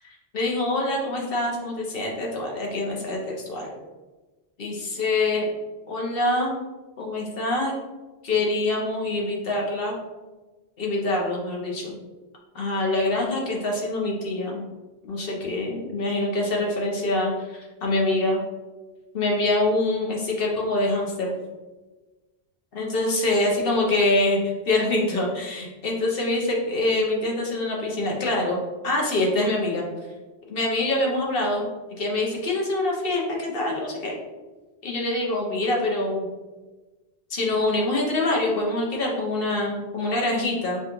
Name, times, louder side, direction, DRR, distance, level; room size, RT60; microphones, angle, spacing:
voice 1, 0.3-3.8 4.6-5.5 5.9-6.5 7.0-7.7 8.2-10.0 10.8-12.0 12.5-14.7 15.0-18.4 19.1-21.3 22.7-24.4 24.7-29.8 30.5-31.7 32.0-34.1 34.8-36.3 37.3-40.8, left 2 dB, 60° left, -1 dB, 1.1 m, -25 dB
5.8 x 2.4 x 3.1 m, 1.2 s
omnidirectional pair, 1.1 m